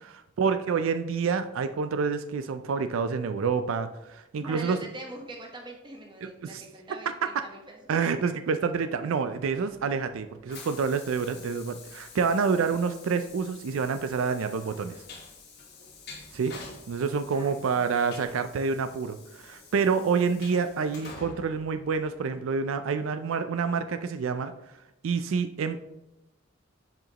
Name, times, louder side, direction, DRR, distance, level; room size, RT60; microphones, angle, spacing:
voice 1, 0.1-4.8 6.2-6.6 7.9-15.0 16.3-16.5 16.9-24.5 25.0-25.8, right 5 dB, 85° right, 10 dB, 0.4 m, -28 dB
voice 2, 4.3-7.9 17.3-17.9, right 1 dB, 25° right, 1 dB, 1.0 m, -43 dB
Train, 9.3-22.5, left 4 dB, 50° left, 1.2 m, -48 dB
7.6 x 5.0 x 2.9 m, 0.95 s
head